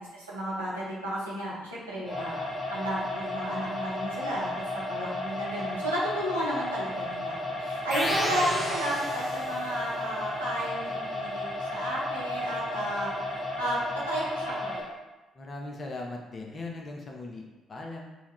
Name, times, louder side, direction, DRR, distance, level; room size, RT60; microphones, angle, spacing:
voice 1, 0.0-2.4 2.7-13.8 14.1-14.9, equal, 90° right, -9 dB, 0.6 m, -33 dB
sound 1, 2.0-14.8, left 1 dB, 5° left, 1.2 m, -34 dB
sound 2, 7.9-9.8, right 1 dB, 20° right, 0.6 m, -32 dB
voice 2, 15.3-17.4 17.7-18.1, left 2 dB, 35° left, 0 dB, 0.5 m, -39 dB
2.3 x 2.2 x 3.4 m, 1.1 s
figure-of-eight pair, 45°, 0 cm